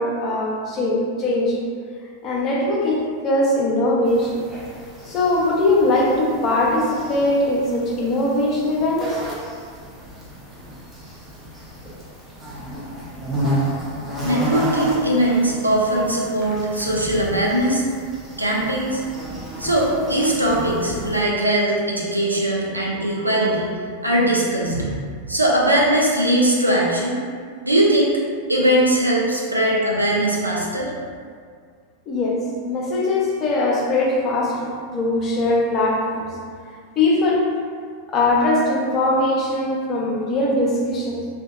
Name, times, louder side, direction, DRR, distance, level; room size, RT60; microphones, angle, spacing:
voice 1, 0.0-1.7 2.2-4.4 5.1-9.2 32.1-36.3 37.0-37.6 38.1-41.3, left 2 dB, 30° left, -4 dB, 0.5 m, -21 dB
sound 1, 4.1-21.2, equal, 15° right, 0.6 m, -32 dB
voice 2, 14.2-17.9 18.4-19.0 19.6-23.7 24.0-24.9 25.3-27.2 27.6-28.1 28.5-30.9, right 1 dB, 85° right, -4 dB, 0.4 m, -20 dB
2.5 x 2.2 x 2.2 m, 2.1 s
figure-of-eight pair, 90°, 0 cm